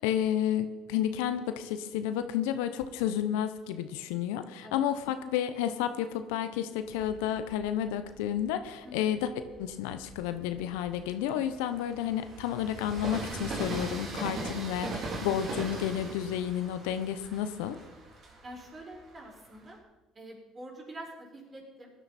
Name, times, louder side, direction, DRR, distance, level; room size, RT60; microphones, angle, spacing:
voice 1, 0.0-9.3 9.6-17.8, left 10 dB, 80° left, 10 dB, 0.9 m, -31 dB
Train, 6.9-8.5 9.2-19.8, right 2 dB, 50° right, 3.4 m, -40 dB
voice 2, 18.4-19.8 20.1-21.9, right 1 dB, 30° right, -1 dB, 5.5 m, -46 dB
17.0 x 11.5 x 4.4 m, 1.2 s
hypercardioid pair, 70°, 0 cm